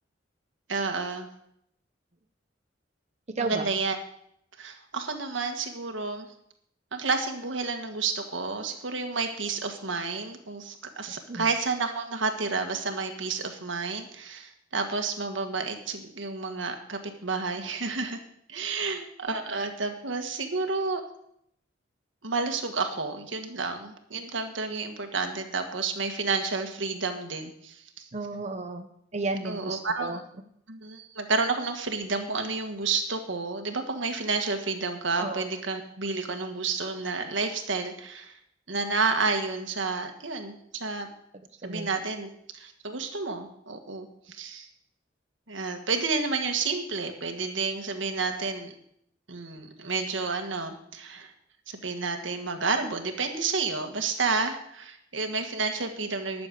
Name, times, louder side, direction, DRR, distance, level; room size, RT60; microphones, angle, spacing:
voice 1, 0.7-1.3 3.4-4.0 4.6-6.3 6.9-18.2 18.5-21.0 22.2-28.0 29.4-30.2 30.7-38.4 38.7-41.1 41.6-44.7 45.5-48.7 49.3-51.3 51.7-56.5, right 4 dB, 85° right, 5 dB, 1.7 m, -30 dB
voice 2, 3.3-3.7 11.3-11.5 18.6-18.7 28.1-28.9 29.1-30.2 35.2-35.4 41.6-41.9, right 3 dB, 40° right, 5 dB, 0.9 m, -33 dB
11.5 x 7.0 x 8.3 m, 0.73 s
head